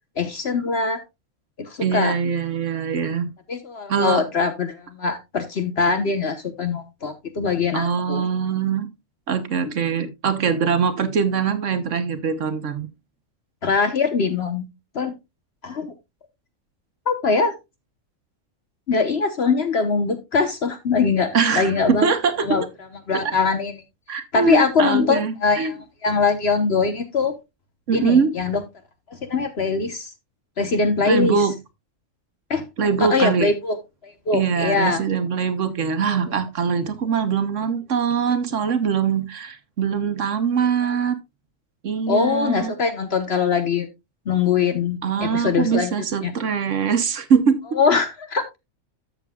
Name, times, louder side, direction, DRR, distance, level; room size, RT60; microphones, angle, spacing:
voice 1, 0.2-1.0 1.6-2.2 3.5-8.2 13.6-14.7 14.9-15.1 15.6-15.9 17.1-17.5 18.9-22.1 22.4-22.6 23.1-23.7 24.1-25.8 26.0-27.4 27.9-28.6 29.1-30.1 30.6-31.4 32.5-32.6 33.0-33.8 34.0-35.0 36.1-36.2 40.8-41.1 42.1-43.9 44.3-45.9 46.2-46.3 47.7-48.6, left 5 dB, 55° left, 1.2 m, -22 dB
voice 2, 1.8-3.3 3.9-4.3 7.7-8.9 9.3-12.9 21.3-22.7 23.1-23.4 24.1-25.7 27.9-28.3 31.1-31.5 32.8-33.5 34.3-41.2 41.8-42.7 45.0-47.6, right 6 dB, 70° right, 1.4 m, -22 dB
13.0 x 6.9 x 2.3 m
omnidirectional pair, 1.3 m